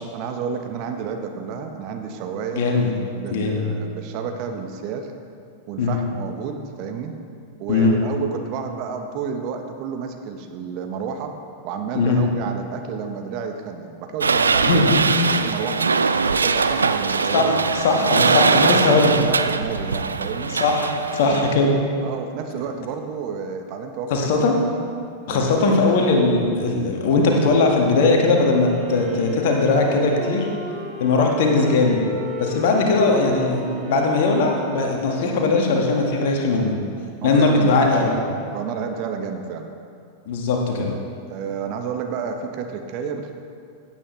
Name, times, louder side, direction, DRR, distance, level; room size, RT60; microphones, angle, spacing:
voice 1, 0.1-2.7 3.1-5.1 5.7-7.1 7.6-11.3 11.6-14.8 15.2-15.9 16.3-17.6 18.2-20.6 21.3-21.7 22.0-24.3 25.3-25.7 33.0-33.4 37.2-39.7 41.3-43.3, right 6 dB, 40° right, 5 dB, 1.0 m, -30 dB
voice 2, 2.5-2.9 3.3-3.6 5.8-6.0 7.7-8.0 11.9-12.2 14.7-15.0 17.3-19.1 20.5-21.7 24.1-24.6 25.3-30.5 31.0-32.0 32.4-36.7 37.2-38.2 40.3-40.9, left 3 dB, 50° left, 1 dB, 1.6 m, -19 dB
sound 1, 14.2-21.6, right 4 dB, 75° right, 0.3 m, -21 dB
Wind instrument woodwind instrument, 28.4-36.1, left 1 dB, 10° right, 2.7 m, -35 dB
16.0 x 8.7 x 3.3 m, 2.3 s
figure-of-eight pair, 90°, 0 cm